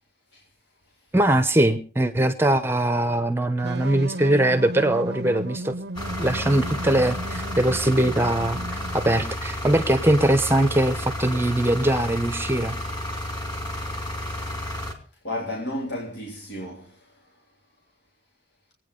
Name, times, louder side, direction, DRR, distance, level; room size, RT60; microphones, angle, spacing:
voice 1, 1.1-5.7 6.2-12.8, right 1 dB, 10° right, 0.8 m, -21 dB
sound 1, 3.6-9.3, right 1 dB, 65° right, 0.7 m, -35 dB
sound 2, 5.9-14.9, left 1 dB, 25° left, 3.2 m, -31 dB
voice 2, 15.2-17.3, left 1 dB, 70° left, 3.6 m, -33 dB
23.5 x 9.3 x 5.2 m
head